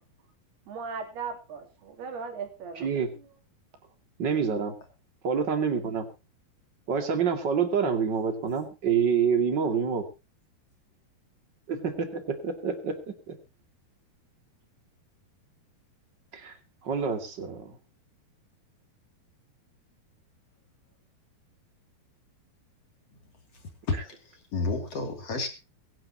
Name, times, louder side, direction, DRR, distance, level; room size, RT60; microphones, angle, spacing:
voice 1, 0.7-2.9, right 5 dB, 90° right, 4 dB, 5.0 m, -37 dB
voice 2, 2.8-3.1 4.2-4.7 5.2-6.1 6.9-10.1 11.7-13.1 16.3-16.5 16.8-17.8, right 6 dB, 35° right, 6 dB, 2.5 m, -27 dB
voice 3, 23.9-25.5, left 3 dB, 45° left, 5 dB, 3.3 m, -31 dB
23.0 x 11.0 x 2.9 m, 0.30 s
omnidirectional pair, 4.4 m